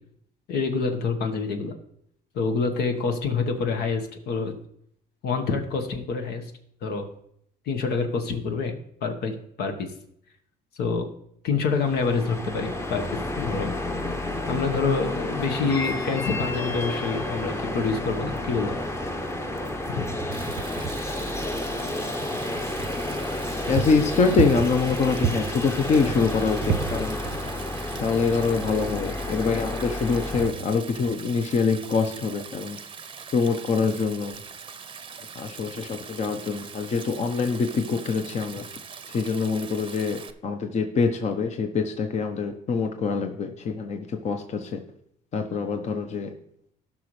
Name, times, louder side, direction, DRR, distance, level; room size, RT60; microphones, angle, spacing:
voice 1, 0.5-1.7 2.3-4.5 5.2-6.5 6.8-7.1 7.6-8.7 9.0-9.9 10.7-11.1 11.4-13.7 14.5-18.7 19.9-20.0, left 4 dB, 75° left, 5 dB, 1.4 m, -27 dB
sound 1, 11.7-30.5, left 1 dB, 15° left, 0.9 m, -31 dB
sound 2, 19.9-22.9 23.4-23.5 23.7-25.6 26.1-27.8 28.1-29.5 30.1-31.4, right 9 dB, 80° right, 0.7 m, -33 dB
Stream, 20.3-40.3, right 6 dB, 30° right, 0.7 m, -42 dB
voice 2, 23.7-27.2 28.0-32.8 33.3-34.4 35.3-38.7 39.1-44.8 45.3-46.3, left 4 dB, 40° left, 5 dB, 0.9 m, -25 dB
16.0 x 6.0 x 3.3 m, 0.71 s
cardioid pair, 110°, 17 cm